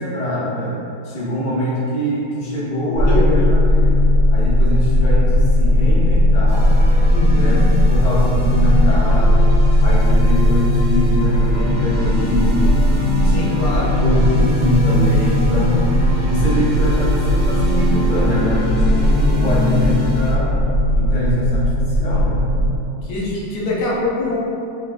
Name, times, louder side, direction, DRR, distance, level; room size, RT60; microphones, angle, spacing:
voice 1, 0.0-4.0 4.3-6.7 7.3-7.6 7.9-9.4 9.8-12.8 14.0-15.9 16.2-20.7 21.0-22.4, equal, 35° left, -9 dB, 0.7 m, -23 dB
sound 1, 2.9-22.8, left 1 dB, 60° right, 1.0 m, -16 dB
voice 2, 3.0-3.5 7.1-7.7 13.2-13.9 23.0-24.4, left 2 dB, 90° left, -5 dB, 1.3 m, -23 dB
sound 2, 6.5-20.3, equal, 5° right, 0.6 m, -26 dB
4.1 x 2.2 x 3.4 m, 2.8 s
omnidirectional pair, 1.7 m